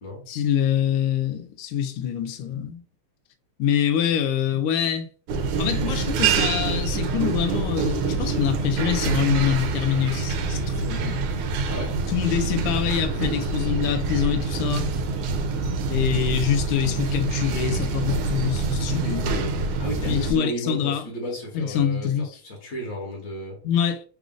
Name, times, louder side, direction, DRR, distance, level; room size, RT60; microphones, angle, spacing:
voice 1, 0.3-2.8 3.6-5.1 5.6-11.2 12.1-14.9 15.9-19.5 20.1-21.1 21.5-22.4 23.6-24.0, left 9 dB, 85° left, 1.5 m, -25 dB
sound 1, 5.3-20.3, right 4 dB, 85° right, 1.5 m, -26 dB
voice 2, 11.7-12.0 19.8-22.1 22.4-23.6, equal, 50° left, 1.2 m, -33 dB
3.7 x 2.4 x 3.7 m
omnidirectional pair, 2.4 m